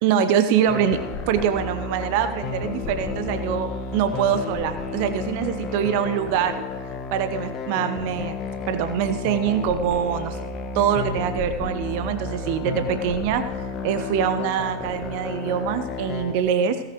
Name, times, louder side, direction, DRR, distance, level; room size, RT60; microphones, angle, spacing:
voice 1, 0.0-6.6 7.1-8.3 8.7-10.4 10.7-13.4 13.8-16.8, right 8 dB, 45° right, 9 dB, 0.9 m, -24 dB
sound 1, 0.7-16.3, left 4 dB, 30° left, 1.4 m, -32 dB
17.0 x 14.0 x 3.0 m, 1.3 s
figure-of-eight pair, 90°, 0 cm